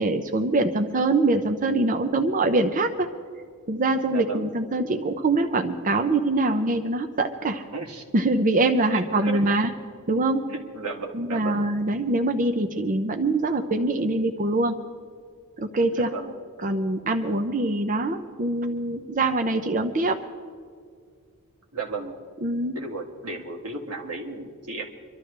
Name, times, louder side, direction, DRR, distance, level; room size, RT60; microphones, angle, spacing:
voice 1, 0.0-3.1 3.7-7.6 8.1-9.7 10.1-10.4 11.1-14.7 15.6-16.1 16.6-20.2 22.4-22.8, right 2 dB, 40° right, 5 dB, 0.7 m, -24 dB
voice 2, 4.1-4.4 7.7-8.0 8.9-9.5 10.5-11.6 16.0-16.4 21.7-22.2 22.7-24.9, right 3 dB, 90° right, 0 dB, 2.1 m, -34 dB
25.0 x 12.5 x 3.3 m, 2.1 s
head